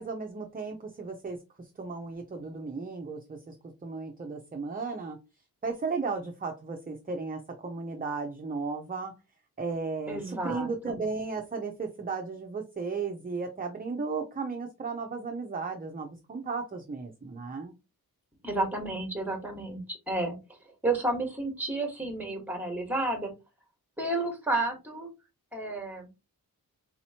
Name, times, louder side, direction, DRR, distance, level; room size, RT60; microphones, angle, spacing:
voice 1, 0.0-3.5 3.8-5.2 5.6-9.1 9.6-17.7, right 4 dB, 25° right, 3 dB, 0.5 m, -35 dB
voice 2, 10.1-11.0 18.4-20.4 20.8-23.3 24.0-25.1 25.5-26.1, right 2 dB, 5° right, 3 dB, 1.2 m, -31 dB
4.1 x 2.9 x 2.8 m, 0.27 s
wide cardioid pair, 115°, 38 cm